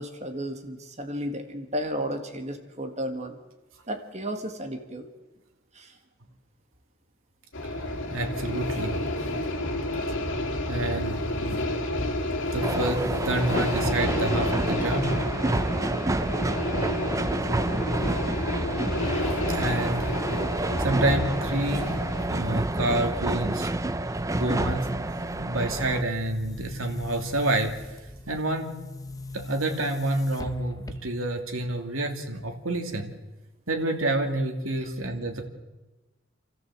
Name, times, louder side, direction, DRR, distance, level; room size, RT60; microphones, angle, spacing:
voice 1, 0.0-3.4 3.9-5.0 5.8-5.9, equal, 35° right, 5 dB, 2.0 m, -33 dB
sound 1, 7.5-22.3, left 1 dB, 65° left, 2.9 m, -30 dB
voice 2, 8.1-9.0 10.7-11.1 11.4-11.6 12.5-15.2 19.2-20.1 20.8-21.9 22.3-23.9 24.3-25.0 25.3-27.7 28.3-28.7 29.3-33.1 33.7-35.5, right 2 dB, 85° right, 4 dB, 2.7 m, -28 dB
sound 2, 12.6-26.0, right 2 dB, 15° right, 0.6 m, -28 dB
Boom, 25.6-31.4, left 2 dB, 15° left, 0.9 m, -40 dB
27.5 x 14.0 x 7.6 m, 1.1 s
head